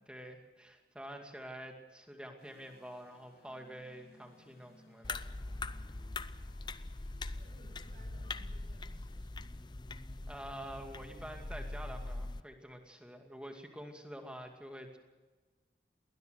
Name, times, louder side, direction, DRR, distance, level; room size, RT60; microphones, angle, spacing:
voice 1, 0.1-5.2 10.3-15.0, equal, 5° right, 4 dB, 2.3 m, -47 dB
sound 1, 2.4-7.4, left 1 dB, 55° left, 5.4 m, -64 dB
sound 2, 5.0-12.4, left 2 dB, 25° left, 0.6 m, -42 dB
voice 2, 7.3-9.5, right 1 dB, 45° right, -4 dB, 7.1 m, -62 dB
20.5 x 19.5 x 6.4 m, 1.3 s
head